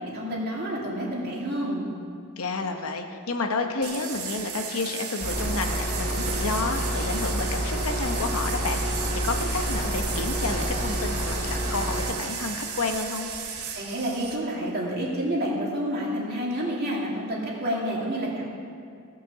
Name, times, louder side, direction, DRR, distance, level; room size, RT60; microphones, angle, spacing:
voice 1, 0.1-1.9 13.7-18.5, equal, 45° right, -4 dB, 2.6 m, -29 dB
voice 2, 2.4-13.3, left 3 dB, 75° left, 4 dB, 1.0 m, -30 dB
sound 1, 3.8-14.4, right 7 dB, 90° right, 1.3 m, -35 dB
sound 2, 5.2-12.1, equal, 50° left, 3.0 m, -29 dB
16.5 x 6.0 x 6.9 m, 2.3 s
head